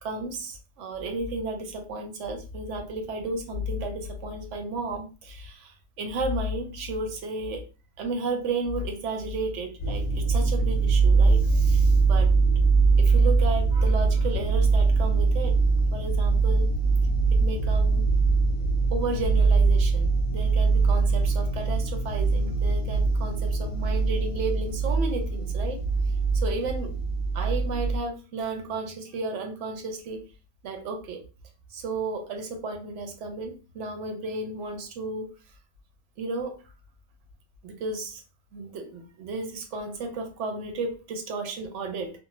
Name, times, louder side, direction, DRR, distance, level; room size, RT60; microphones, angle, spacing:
voice 1, 0.0-7.6 8.0-12.3 13.0-15.5 15.9-16.7 17.4-18.0 18.9-25.8 26.3-26.9 27.3-30.2 30.6-31.2 31.7-35.3 36.2-36.5 37.6-38.2 38.5-42.1, right 2 dB, 85° right, 5 dB, 1.0 m, -33 dB
sound 1, 9.8-28.0, right 4 dB, 45° left, 0.7 m, -22 dB
2.6 x 2.0 x 2.9 m, 0.33 s
omnidirectional pair, 1.2 m